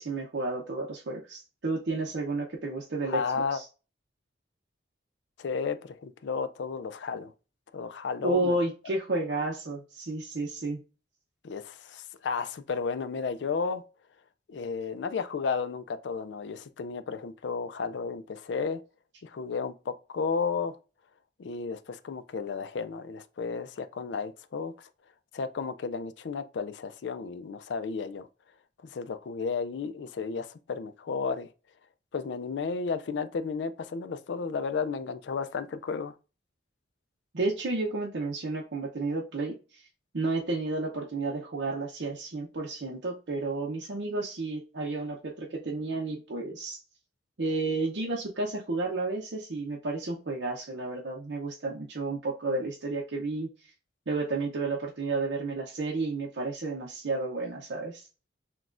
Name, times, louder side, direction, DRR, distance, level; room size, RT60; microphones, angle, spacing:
voice 1, 0.0-3.7 8.2-10.8 37.3-39.8 40.1-46.8 47.4-53.5 54.1-58.1, right 2 dB, 70° right, 0.7 m, -31 dB
voice 2, 3.1-3.6 5.4-7.3 7.7-8.6 11.4-13.8 14.5-18.8 19.2-20.8 21.4-24.9 25.3-28.3 28.8-31.5 32.1-36.1, left 5 dB, 75° left, 0.4 m, -33 dB
5.9 x 2.3 x 2.5 m
head